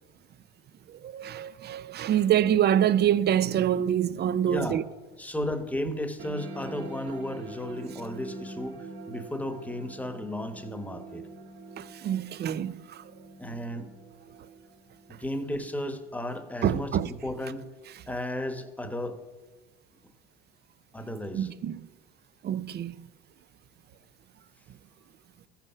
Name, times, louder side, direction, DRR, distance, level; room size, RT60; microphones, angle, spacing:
voice 1, 0.9-4.8 11.8-13.0 16.6-17.1 21.3-21.8 22.4-23.1, right 10 dB, 30° right, 0.4 m, -26 dB
voice 2, 4.5-4.8 5.2-8.8 9.1-11.2 13.4-13.9 15.1-17.6 18.1-19.2 20.9-21.5, left 1 dB, 5° left, 1.1 m, -34 dB
sound 1, 6.2-17.2, right 3 dB, 65° right, 1.8 m, -45 dB
14.0 x 5.7 x 5.7 m
hypercardioid pair, 80°, 34 cm